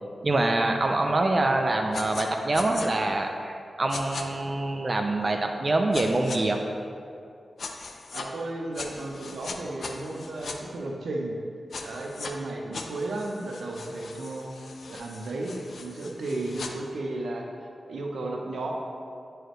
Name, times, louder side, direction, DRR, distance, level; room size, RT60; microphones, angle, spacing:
voice 1, 0.2-6.6, right 2 dB, 40° right, 3 dB, 0.4 m, -25 dB
sound 1, 1.9-2.3 2.5-2.9 3.9-4.2 5.9-6.4 7.6-8.3 8.7-10.6 11.7-12.3 12.7-16.7, left 4 dB, 75° left, 0.5 m, -39 dB
voice 2, 8.1-11.4 11.8-18.7, right 2 dB, 90° right, 0 dB, 0.8 m, -34 dB
8.9 x 4.8 x 3.1 m, 2.4 s
cardioid pair, 70°, 0 cm